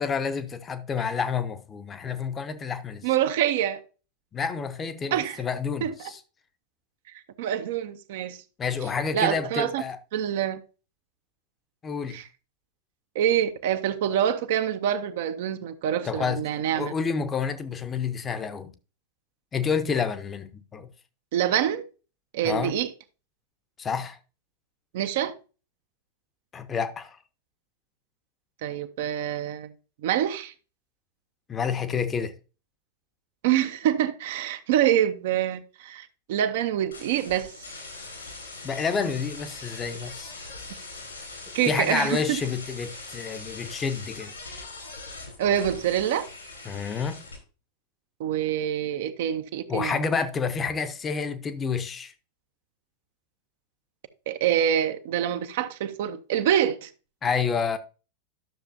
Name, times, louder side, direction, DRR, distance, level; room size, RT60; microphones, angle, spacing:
voice 1, 0.0-3.1 4.3-6.2 8.6-10.0 11.8-12.2 16.0-16.4 16.8-18.7 19.5-20.9 22.4-22.7 23.8-24.2 26.5-27.2 31.5-32.3 38.6-40.3 41.7-44.3 46.6-47.2 49.7-52.1 57.2-57.8, left 6 dB, 20° left, 0.9 m, -29 dB
voice 2, 3.0-3.8 5.1-5.4 5.8-6.0 7.4-8.4 9.1-9.8 10.1-10.6 12.1-12.3 13.1-16.9 21.3-21.8 22.3-22.9 24.9-25.3 28.6-29.7 30.0-30.5 33.4-37.5 41.5-42.4 45.4-46.3 48.2-50.0 54.3-56.9, right 10 dB, 55° right, 0.8 m, -26 dB
sound 1, 36.9-47.4, left 3 dB, 75° left, 4.0 m, -41 dB
12.0 x 6.7 x 2.7 m
figure-of-eight pair, 90°, 0 cm